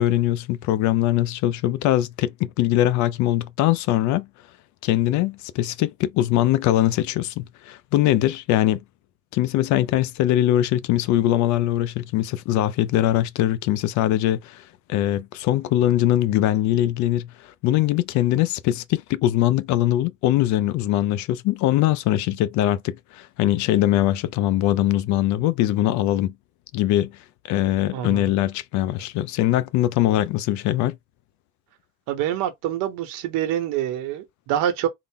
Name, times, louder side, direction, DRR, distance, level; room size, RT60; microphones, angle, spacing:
voice 1, 0.0-4.3 4.8-8.8 9.3-14.6 14.9-26.3 26.7-27.1 27.5-31.0, left 13 dB, 60° left, 0.5 m, -22 dB
voice 2, 27.9-28.3 32.1-34.9, right 11 dB, 75° right, 1.2 m, -26 dB
3.8 x 2.1 x 3.5 m
cardioid pair, 155°, 32 cm